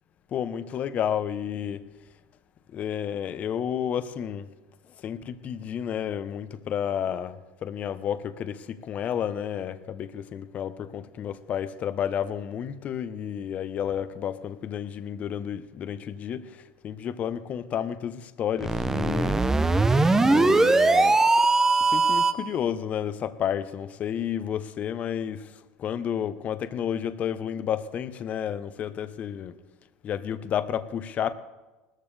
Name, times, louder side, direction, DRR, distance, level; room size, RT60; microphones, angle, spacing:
voice 1, 0.3-1.9 2.7-4.5 5.0-19.4 20.2-21.2 21.8-25.5 25.8-29.6 30.0-31.3, left 9 dB, 40° left, 1.0 m, -31 dB
sound 1, 18.6-22.5, right 3 dB, 10° right, 0.8 m, -20 dB
19.5 x 14.5 x 3.4 m
supercardioid pair, 105°, 4 cm